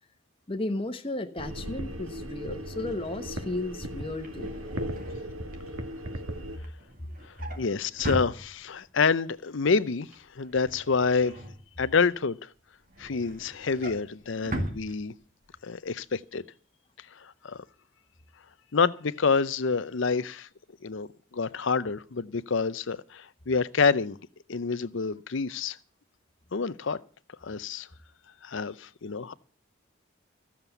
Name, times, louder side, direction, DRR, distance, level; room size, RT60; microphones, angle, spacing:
voice 1, 0.5-4.5, left 2 dB, 25° left, 1.0 m, -34 dB
sound 1, 1.4-6.6, equal, 85° right, 1.7 m, -37 dB
Drawer open or close, 4.1-9.0 9.4-9.7 9.9-12.2 12.6-15.6 15.9-16.1 16.4-16.5, right 1 dB, 40° right, 2.1 m, -40 dB
voice 2, 7.6-10.1 10.4-11.4 11.8-12.5 13.0-15.1 15.6-16.4 17.2-17.6 18.7-20.5 20.8-24.2 24.5-25.8 26.5-27.0 27.4-27.9 28.4-29.3, left 5 dB, 65° left, 0.6 m, -27 dB
14.0 x 7.4 x 8.2 m
head